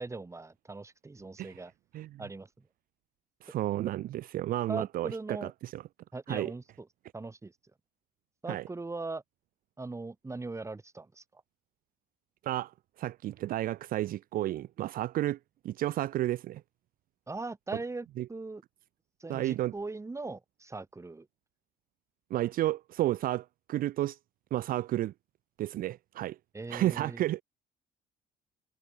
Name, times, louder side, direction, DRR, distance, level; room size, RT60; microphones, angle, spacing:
voice 1, 0.0-1.7 2.2-2.7 4.7-5.5 6.1-6.9 7.1-7.5 8.4-9.2 9.8-11.4 17.3-18.6 19.2-21.3 26.5-27.3, right 3 dB, 15° right, 4.6 m, -40 dB
voice 2, 3.4-5.8 6.3-6.5 8.5-8.6 12.4-15.4 15.6-16.6 18.2-18.3 19.3-19.7 22.3-24.2 24.5-25.1 25.6-26.4 26.7-27.4, right 14 dB, 60° right, 0.5 m, -32 dB
cardioid pair, 110°, 17 cm